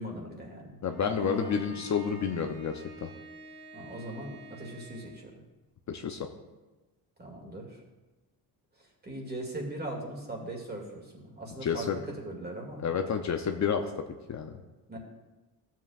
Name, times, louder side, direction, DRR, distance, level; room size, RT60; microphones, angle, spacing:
voice 1, 0.0-1.9 3.7-5.4 7.2-7.8 8.8-12.8 14.9-15.0, right 1 dB, 25° right, 0 dB, 2.2 m, -40 dB
voice 2, 0.8-3.1 5.9-6.3 11.6-12.0 12.8-13.8 14.3-14.5, left 7 dB, 45° left, 5 dB, 0.7 m, -30 dB
Bowed string instrument, 0.9-5.3, left 2 dB, 60° right, 3.1 m, -47 dB
13.5 x 7.4 x 2.4 m, 1.1 s
cardioid pair, 100°, 41 cm